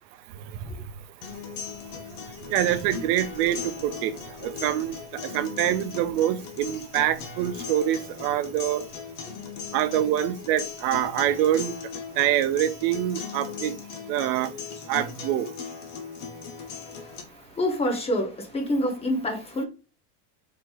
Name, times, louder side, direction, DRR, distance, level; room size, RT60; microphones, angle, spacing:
voice 1, 0.3-0.9 2.4-8.8 9.7-11.7 12.2-13.7 14.1-14.5 14.9-15.5, right 12 dB, 75° right, 0.6 m, -25 dB
sound 1, 1.2-17.2, left 6 dB, 45° left, 0.9 m, -38 dB
voice 2, 16.6-19.6, left 1 dB, 15° left, 0.7 m, -28 dB
4.2 x 2.9 x 2.3 m
supercardioid pair, 140°, 48 cm